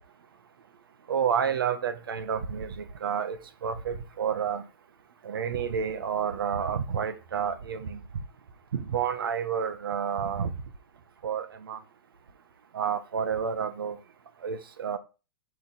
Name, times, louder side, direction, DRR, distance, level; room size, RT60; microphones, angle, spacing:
voice 1, 1.1-4.6 5.2-8.0 8.7-10.5 11.2-11.8 12.7-14.0 14.4-15.0, right 7 dB, 80° right, 1.2 m, -30 dB
8.0 x 5.5 x 4.0 m
hypercardioid pair, 120°, 12 cm